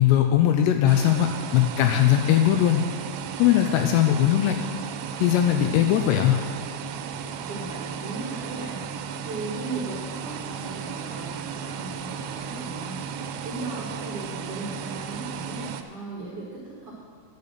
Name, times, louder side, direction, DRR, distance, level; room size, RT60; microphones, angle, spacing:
voice 1, 0.0-2.9 3.4-4.6 5.2-6.4, left 11 dB, 85° left, 6 dB, 2.5 m, -20 dB
sound 1, 0.9-15.8, right 7 dB, 80° right, 2.8 m, -35 dB
voice 2, 7.5-8.8 9.2-13.0 13.4-16.9, right 3 dB, 60° right, -6 dB, 1.5 m, -36 dB
11.0 x 6.8 x 6.6 m, 2.1 s
omnidirectional pair, 5.2 m